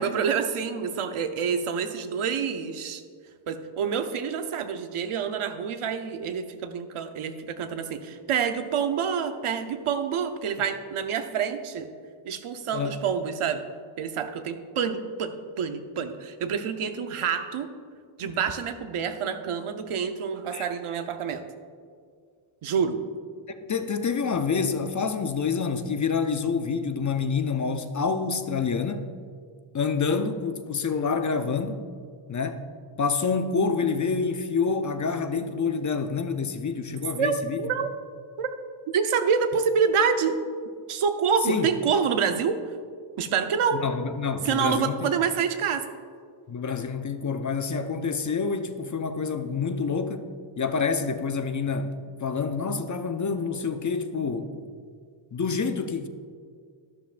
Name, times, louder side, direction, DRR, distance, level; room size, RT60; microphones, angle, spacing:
voice 1, 0.0-3.0 3.5-11.9 12.2-13.6 14.0-17.7 18.2-21.4 22.6-23.0 37.2-37.9 38.4-38.5 38.9-40.4 40.9-42.6 43.2-43.8 44.4-45.8, right 6 dB, 80° right, 7 dB, 0.9 m, -27 dB
voice 2, 23.6-29.1 29.7-31.8 32.3-32.7 33.0-37.7 41.4-41.7 43.7-45.1 46.5-50.3 50.6-51.9 52.2-54.6 55.3-56.1, left 5 dB, 35° left, 8 dB, 0.6 m, -27 dB
12.0 x 11.5 x 2.5 m, 2.1 s
wide cardioid pair, 130°, 50 cm